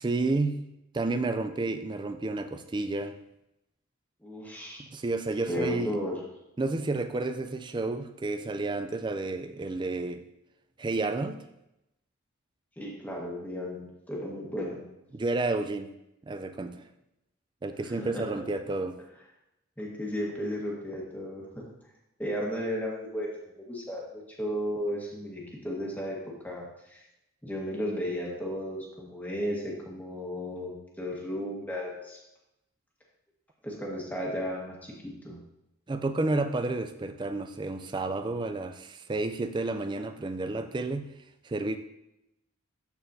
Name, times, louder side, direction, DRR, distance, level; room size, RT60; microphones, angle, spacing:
voice 1, 0.0-3.2 4.8-6.0 6.6-10.2 10.8-11.4 15.1-15.9 16.3-16.8 17.6-19.0 35.9-41.1 41.4-41.8, right 2 dB, 20° right, 8 dB, 0.3 m, -31 dB
voice 2, 4.2-4.8 5.5-6.2 12.8-14.8 17.8-18.4 19.8-21.6 22.2-23.3 23.6-26.2 26.4-27.0 27.4-32.2 33.6-34.9 35.2-35.4, equal, 10° left, -3 dB, 1.4 m, -34 dB
12.5 x 4.3 x 2.7 m, 0.88 s
head